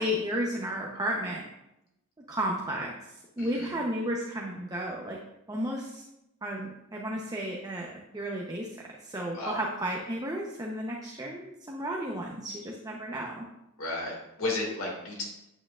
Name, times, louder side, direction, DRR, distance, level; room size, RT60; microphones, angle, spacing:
voice 1, 0.0-1.4 2.3-2.9 3.4-5.2 5.5-6.0 6.4-7.9 8.1-8.7 9.0-13.5, equal, 20° right, -1 dB, 0.8 m, -33 dB
voice 2, 3.4-3.7 9.3-9.6 13.8-15.2, left 2 dB, 80° left, -2 dB, 2.2 m, -33 dB
8.9 x 8.6 x 2.4 m, 0.87 s
head